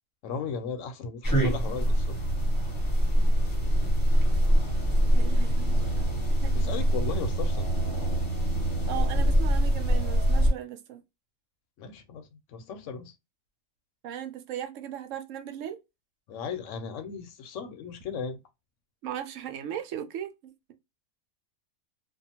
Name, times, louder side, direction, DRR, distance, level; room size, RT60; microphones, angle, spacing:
voice 1, 0.2-2.2 6.5-7.7 11.8-12.3 12.5-13.1 16.3-18.4, left 6 dB, 70° left, 0.9 m, -36 dB
sound 1, 1.2-10.5, equal, 15° left, 0.8 m, -24 dB
voice 2, 5.1-6.1 6.4-6.8 8.9-11.0 14.0-15.8 19.0-20.7, right 10 dB, 70° right, 0.9 m, -38 dB
2.6 x 2.3 x 2.7 m
omnidirectional pair, 1.5 m